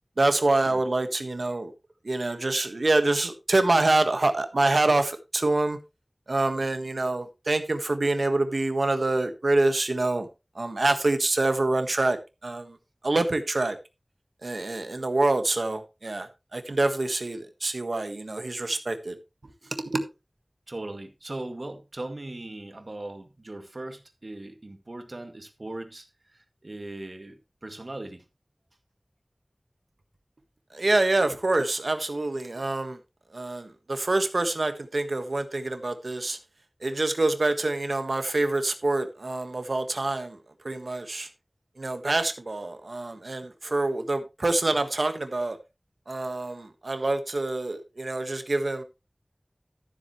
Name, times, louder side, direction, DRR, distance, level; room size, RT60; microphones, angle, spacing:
voice 1, 0.2-1.7 2.0-5.8 6.3-10.3 10.6-12.2 12.4-12.7 13.0-13.8 14.4-19.1 19.8-20.0 30.7-33.0 33.3-36.4 36.8-40.4 40.6-41.3 41.8-45.6 46.1-48.8, right 2 dB, 85° right, 1.5 m, -26 dB
voice 2, 20.7-26.1 26.3-28.2, right 2 dB, 65° right, 2.0 m, -39 dB
13.5 x 7.8 x 3.2 m
wide cardioid pair, 40°, 0 cm